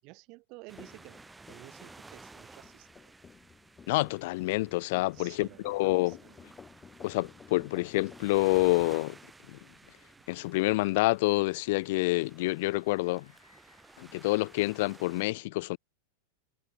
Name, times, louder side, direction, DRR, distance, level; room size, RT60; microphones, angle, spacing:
voice 1, 0.0-1.2 1.5-3.1 5.1-6.5, right 26 dB, 40° right, 5.7 m, -52 dB
sound 1, 0.7-15.2, right 3 dB, 10° right, 0.9 m, -54 dB
sound 2, 0.8-8.3, left 6 dB, 15° left, 2.1 m, -54 dB
voice 2, 3.9-6.2 7.0-9.2 9.5-9.6 10.3-13.3 14.0-15.8, left 21 dB, 50° left, 0.3 m, -28 dB
sound 3, 12.7-14.4, left 4 dB, 80° left, 2.6 m, -65 dB
figure-of-eight pair, 90°, 0 cm